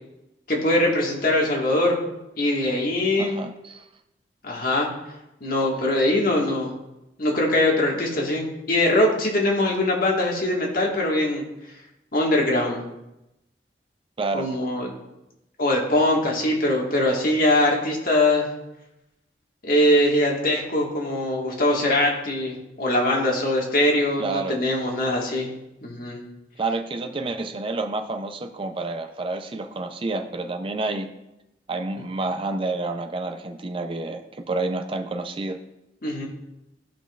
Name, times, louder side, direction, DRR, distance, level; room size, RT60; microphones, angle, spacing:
voice 1, 0.5-2.0 2.4-3.4 4.4-4.9 5.4-6.7 7.2-11.4 12.1-12.8 14.3-14.9 15.6-18.5 19.6-25.5 25.8-26.2 36.0-36.3, left 1 dB, 55° left, -1 dB, 1.6 m, -22 dB
voice 2, 3.2-3.9 14.2-14.5 24.2-24.6 26.6-31.1 31.7-35.6, right 3 dB, 30° right, 7 dB, 0.4 m, -29 dB
14.0 x 5.9 x 2.4 m, 0.93 s
head